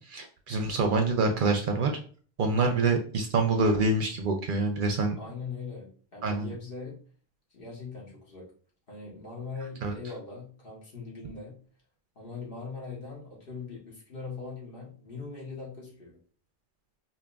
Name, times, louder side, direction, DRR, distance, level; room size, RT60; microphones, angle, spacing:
voice 1, 0.1-1.9 2.4-5.1 6.2-6.5 9.8-9.9, right 3 dB, 60° right, 4 dB, 0.6 m, -26 dB
voice 2, 5.2-7.0 7.5-8.5 8.9-11.6 12.1-16.2, left 4 dB, 60° left, -4 dB, 1.5 m, -41 dB
5.0 x 2.7 x 2.3 m, 0.43 s
omnidirectional pair, 1.1 m